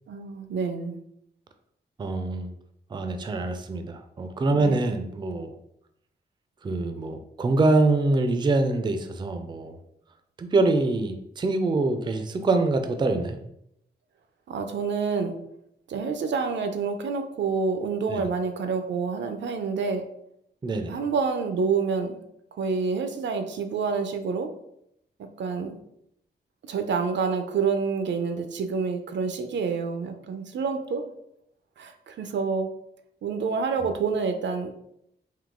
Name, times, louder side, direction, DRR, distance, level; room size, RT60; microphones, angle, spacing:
voice 1, 0.1-1.0 4.5-4.9 14.5-15.3 15.9-20.0 20.9-22.2 22.5-24.5 25.4-25.7 26.7-31.0 31.8-32.7 33.2-34.7, right 5 dB, 85° right, 7 dB, 0.5 m, -28 dB
voice 2, 2.0-2.5 2.9-5.5 6.6-9.8 10.4-13.4 18.1-18.3 20.6-21.0, right 2 dB, 25° right, 7 dB, 0.3 m, -25 dB
3.7 x 2.7 x 3.6 m, 0.77 s
wide cardioid pair, 155°, 18 cm